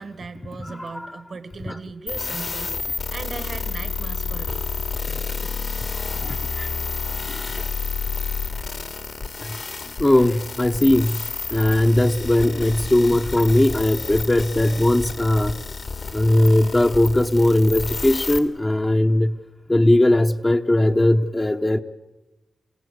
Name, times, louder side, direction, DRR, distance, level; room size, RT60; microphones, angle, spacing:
voice 1, 0.0-4.6, right 4 dB, 65° right, 11 dB, 1.7 m, -37 dB
sound 1, 2.1-18.4, left 4 dB, 60° left, 2.8 m, -30 dB
voice 2, 6.2-6.7 7.5-7.6 9.4-9.5 10.0-15.6 16.1-19.4 19.7-21.8, left 1 dB, 25° left, 3 dB, 1.1 m, -19 dB
29.0 x 16.5 x 8.3 m, 1.1 s
cardioid pair, 60°, 0 cm